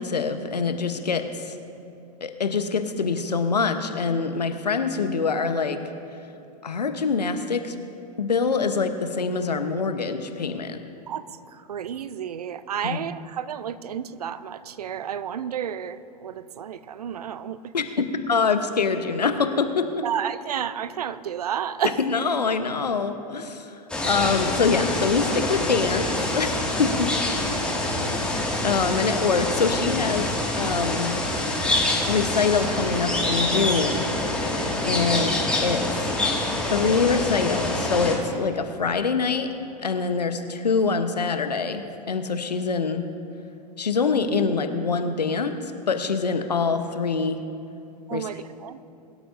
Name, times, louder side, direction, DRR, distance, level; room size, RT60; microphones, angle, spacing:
voice 1, 0.0-1.5 2.2-5.8 6.6-7.7 8.2-10.8 12.8-13.1 17.7-20.0 22.1-23.7 24.1-27.1 27.8-28.0 28.6-31.1 32.1-34.1 34.8-35.8 36.7-39.5 39.8-43.1 43.8-45.5 45.9-47.4 48.1-48.3, left 5 dB, 80° left, 8 dB, 1.0 m, -25 dB
voice 2, 11.1-17.6 20.0-22.0 48.1-48.8, right 9 dB, 65° right, 15 dB, 0.6 m, -31 dB
sound 1, 23.9-38.2, left 1 dB, 5° left, 2.1 m, -26 dB
22.5 x 12.0 x 2.7 m, 2.6 s
figure-of-eight pair, 100°, 21 cm